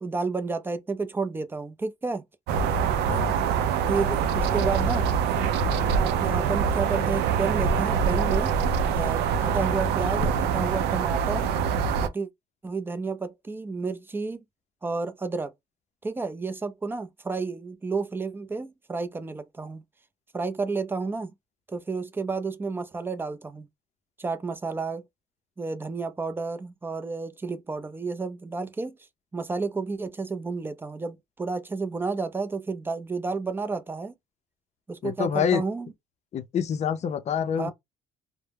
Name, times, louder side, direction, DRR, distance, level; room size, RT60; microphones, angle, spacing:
voice 1, 0.0-2.2 3.9-5.0 6.0-8.5 8.9-11.5 12.0-12.3 12.6-14.4 14.8-15.5 16.0-19.8 20.3-21.3 21.7-23.7 24.2-25.0 25.6-29.0 29.3-34.1 34.9-35.9 37.6-37.7, right 4 dB, 15° right, 0.4 m, -31 dB
sound 1, 2.5-12.1, right 6 dB, 80° right, 0.4 m, -24 dB
voice 2, 35.0-35.6 36.3-37.7, left 7 dB, 40° left, 0.5 m, -26 dB
2.2 x 2.0 x 3.2 m
cardioid pair, 110°, 17 cm